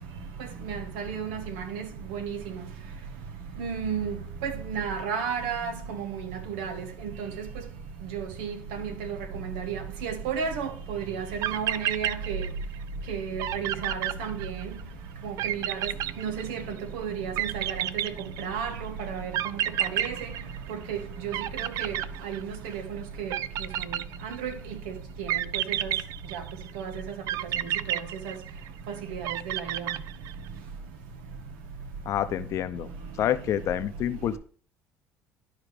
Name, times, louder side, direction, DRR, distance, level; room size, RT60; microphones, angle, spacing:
voice 1, 0.6-2.4 3.6-7.5 8.1-12.4 13.1-14.7 15.2-15.9 16.2-20.2 20.7-21.9 22.2-23.3 24.2-24.8 25.2-25.3 25.5-25.9 26.3-26.4 26.7-26.9 27.9-28.0 28.2-28.3 29.1-29.8, right 6 dB, 85° right, 1.2 m, -33 dB
sound 1, 11.1-11.2 11.4-12.8 13.1-13.2 13.4-14.8 15.4-16.8 17.4-18.7 19.3-21.0 21.3-22.7 23.3-24.5 25.3-26.7 27.3-28.8 29.2-30.5, right 12 dB, 65° right, 0.4 m, -30 dB
voice 2, 32.0-32.9 33.2-34.4, left 11 dB, 60° left, 0.7 m, -28 dB
12.0 x 4.9 x 3.3 m
supercardioid pair, 90°, 6 cm